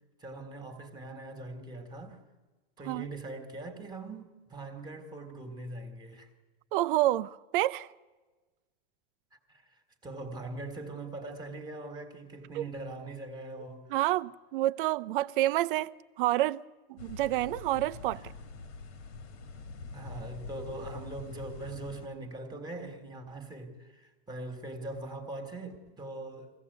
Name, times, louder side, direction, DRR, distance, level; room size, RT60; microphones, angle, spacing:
voice 1, 0.2-2.2 2.8-6.3 9.3-13.8 19.9-26.5, right 2 dB, 10° right, 1.7 m, -42 dB
voice 2, 6.7-7.9 12.5-12.6 13.9-16.6 16.9-18.2, right 15 dB, 55° right, 0.6 m, -28 dB
sound 1, 17.0-22.1, left 3 dB, 80° left, 2.2 m, -45 dB
22.5 x 16.0 x 8.1 m
supercardioid pair, 145°, 33 cm